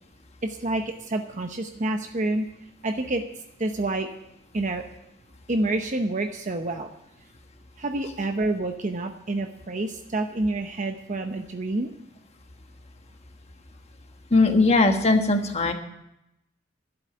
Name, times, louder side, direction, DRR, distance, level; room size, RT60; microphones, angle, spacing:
voice 1, 0.4-2.5 2.8-3.2 3.6-4.1 4.5-4.8 5.5-6.9 7.8-11.9, right 2 dB, 40° right, 5 dB, 0.8 m, -28 dB
voice 2, 14.3-15.7, left 3 dB, 35° left, 5 dB, 1.4 m, -19 dB
12.5 x 8.0 x 9.3 m, 0.84 s
head